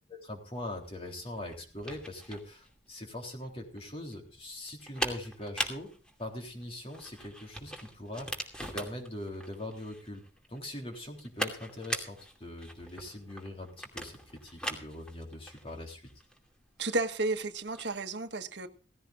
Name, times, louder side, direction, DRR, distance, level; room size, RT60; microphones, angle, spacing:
voice 1, 0.1-5.9 6.2-10.2 10.5-16.1, left 1 dB, 30° left, 2 dB, 3.5 m, -42 dB
sound 1, 0.6-18.0, equal, 5° left, 2.5 m, -41 dB
voice 2, 16.8-18.7, right 2 dB, 75° right, 8 dB, 1.4 m, -32 dB
17.5 x 16.0 x 2.5 m, 0.39 s
head